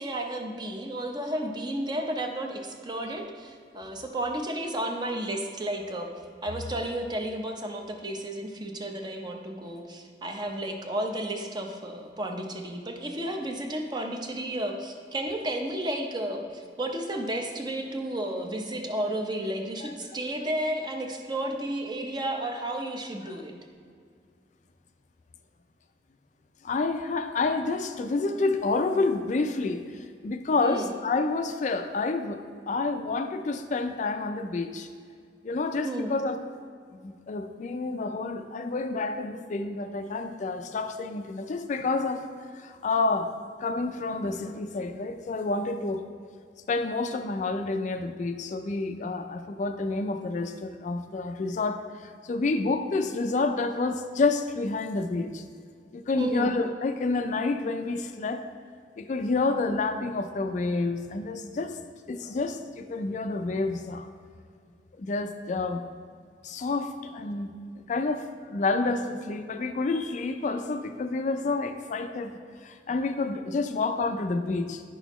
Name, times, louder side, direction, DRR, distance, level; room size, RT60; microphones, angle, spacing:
voice 1, 0.0-6.1 6.4-23.5 30.6-30.9 35.8-36.1 56.2-56.5, right 1 dB, 25° right, 3 dB, 0.7 m, -32 dB
voice 2, 26.6-34.9 35.4-36.4 37.0-42.3 42.5-43.3 43.6-46.0 46.7-55.4 55.9-58.5 59.0-61.8 62.1-64.1 65.0-65.9 66.4-67.5 67.8-72.3 72.6-74.8, left 3 dB, 45° left, 7 dB, 0.4 m, -29 dB
9.7 x 6.1 x 3.0 m, 2.2 s
head